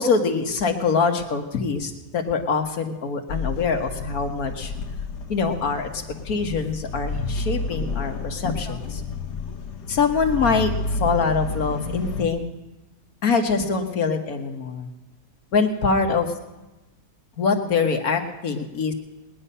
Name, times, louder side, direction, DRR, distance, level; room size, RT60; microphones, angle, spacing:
voice 1, 0.0-4.7 5.3-9.0 9.9-12.4 13.2-14.9 15.5-16.3 17.4-18.9, left 5 dB, 65° left, 4 dB, 1.7 m, -24 dB
sound 1, 3.3-12.3, left 3 dB, 80° left, 1.6 m, -30 dB
20.0 x 10.0 x 5.5 m, 1.0 s
omnidirectional pair, 1.7 m